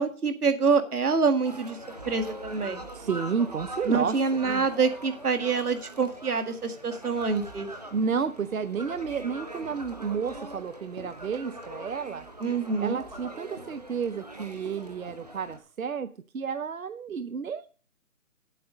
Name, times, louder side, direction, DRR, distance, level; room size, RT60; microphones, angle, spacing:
voice 1, 0.0-1.8 2.1-2.8 3.9-7.7 12.4-13.0, right 4 dB, 85° right, 7 dB, 1.9 m, -26 dB
sound 1, 1.4-15.6, right 1 dB, 30° right, 0.8 m, -42 dB
voice 2, 2.9-4.2 4.4-4.7 7.9-12.3 12.8-16.1 16.3-17.7, right 6 dB, 65° right, 12 dB, 0.7 m, -31 dB
9.0 x 8.5 x 5.2 m, 0.39 s
hypercardioid pair, 175°, 44 cm